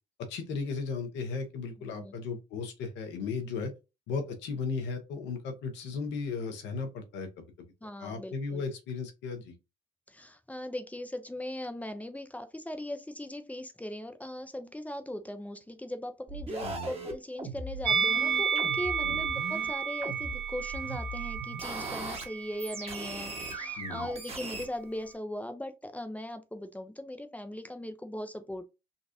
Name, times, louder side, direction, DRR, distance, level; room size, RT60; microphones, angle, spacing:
voice 1, 0.3-3.7 4.1-7.7 8.0-9.5 16.6-16.9 19.0-19.3 23.8-24.1, left 4 dB, 65° left, 1.1 m, -36 dB
voice 2, 1.8-2.2 7.8-8.6 10.1-28.6, left 1 dB, 5° left, 0.7 m, -39 dB
sound 1, 16.3-19.7 20.0-22.2 22.6-24.7, right 3 dB, 30° right, 1.4 m, -39 dB
Musical instrument, 17.8-23.1 23.3-23.6, right 7 dB, 60° right, 1.0 m, -31 dB
4.0 x 2.4 x 2.7 m
hypercardioid pair, 65°, 20 cm